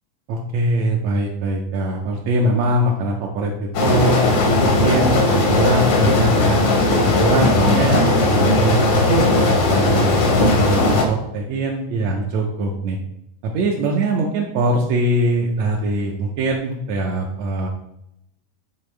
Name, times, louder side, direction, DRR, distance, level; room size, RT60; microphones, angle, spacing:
voice 1, 0.3-6.6 7.0-13.0 13.4-17.7, right 1 dB, 80° right, -1 dB, 1.6 m, -22 dB
sound 1, 3.7-11.0, left 2 dB, 75° left, 1.2 m, -17 dB
8.7 x 4.0 x 3.2 m, 0.81 s
omnidirectional pair, 3.7 m